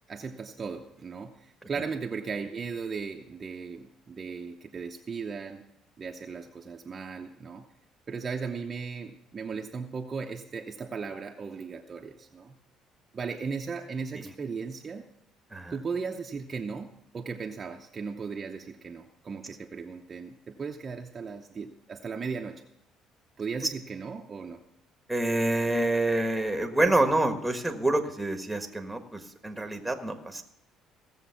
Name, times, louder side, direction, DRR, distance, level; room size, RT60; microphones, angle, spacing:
voice 1, 0.1-5.7 6.0-7.6 8.1-12.6 13.1-15.0 15.7-22.6 23.4-24.6, right 5 dB, 30° right, 2 dB, 0.8 m, -37 dB
voice 2, 25.1-30.4, right 2 dB, 5° right, 5 dB, 1.5 m, -27 dB
17.0 x 7.3 x 5.8 m, 0.78 s
cardioid pair, 115°, 0 cm